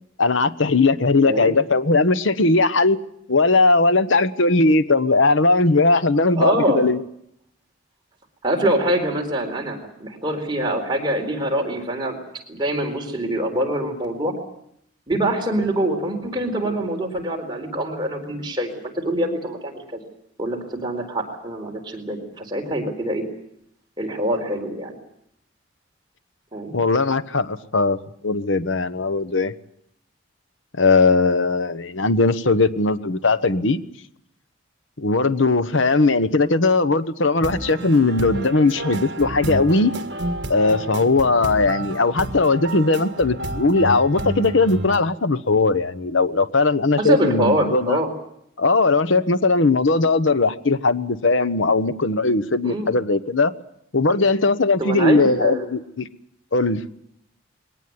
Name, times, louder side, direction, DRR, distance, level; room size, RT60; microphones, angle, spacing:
voice 1, 0.2-3.0 3.3-7.0 26.7-28.0 28.2-29.5 30.8-33.8 35.0-39.9 40.5-48.0 48.6-53.5 53.9-56.1 56.5-56.8, left 3 dB, 75° left, 12 dB, 1.1 m, -19 dB
voice 2, 1.2-1.6 6.4-6.8 8.4-12.1 12.5-14.3 15.1-18.7 18.9-20.0 20.4-23.2 24.0-24.9 26.5-26.7 47.0-48.1 52.6-52.9 54.8-55.6, right 1 dB, 25° right, 2 dB, 4.2 m, -24 dB
sound 1, 37.4-45.0, right 1 dB, 55° right, 1.7 m, -30 dB
22.0 x 18.5 x 9.5 m, 0.73 s
head